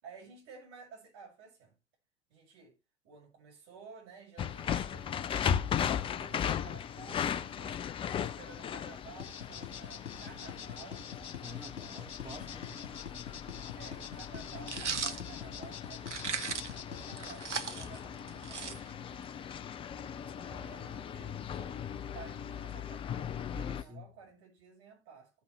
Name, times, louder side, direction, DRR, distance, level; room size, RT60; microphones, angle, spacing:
voice 1, 0.0-1.8 2.3-2.8 3.0-5.3 5.7-7.8 8.2-11.0 13.7-19.3 20.3-21.8 22.1-25.3, right 5 dB, 45° right, 6.4 m, -53 dB
sound 1, 4.4-23.8, left 8 dB, 15° left, 0.4 m, -38 dB
sound 2, 9.2-17.3, left 8 dB, 70° left, 2.0 m, -45 dB
voice 2, 11.3-13.0 23.5-24.0, left 1 dB, 10° right, 1.3 m, -48 dB
sound 3, 14.7-15.2 16.1-16.8 17.2-19.2, right 5 dB, 85° right, 0.8 m, -37 dB
14.5 x 5.7 x 3.2 m
figure-of-eight pair, 85°, 34 cm